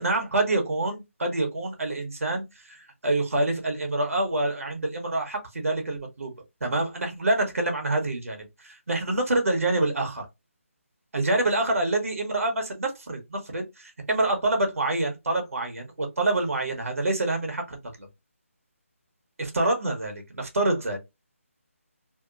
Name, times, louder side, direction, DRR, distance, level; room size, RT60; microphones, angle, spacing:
voice 1, 0.0-6.3 6.6-10.3 11.1-18.1 19.4-21.0, right 2 dB, 75° right, 1.0 m, -27 dB
2.8 x 2.1 x 2.4 m
figure-of-eight pair, 170°, 8 cm